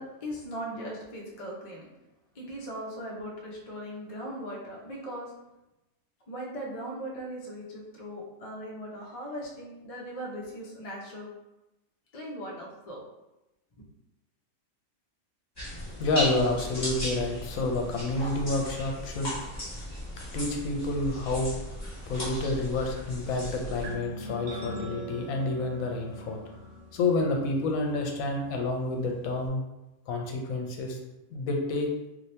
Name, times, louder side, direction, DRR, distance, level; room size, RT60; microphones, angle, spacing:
voice 1, 0.0-1.9 2.3-5.3 6.3-11.3 12.1-13.0, equal, 40° left, -3 dB, 0.5 m, -39 dB
sound 1, 15.6-23.9, equal, 20° left, 1.1 m, -36 dB
voice 2, 16.0-19.3 20.3-21.5 22.1-26.4 26.9-29.6 30.1-31.0 31.3-31.9, left 2 dB, 75° left, 2 dB, 1.0 m, -29 dB
sound 2, 23.8-29.5, left 1 dB, 70° right, 1.0 m, -43 dB
2.8 x 2.7 x 3.2 m, 0.96 s
omnidirectional pair, 1.5 m